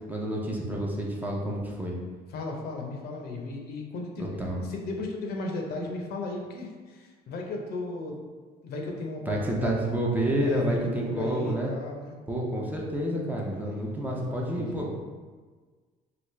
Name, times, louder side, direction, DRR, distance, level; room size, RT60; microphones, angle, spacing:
voice 1, 0.1-1.9 4.4-4.6 9.3-11.7 12.3-15.0, right 1 dB, 10° right, -3 dB, 0.5 m, -29 dB
voice 2, 2.3-8.2 8.6-9.8 10.4-12.2 13.6-14.7, left 3 dB, 70° left, 1 dB, 0.6 m, -36 dB
3.4 x 2.4 x 3.1 m, 1.5 s
cardioid pair, 110°, 17 cm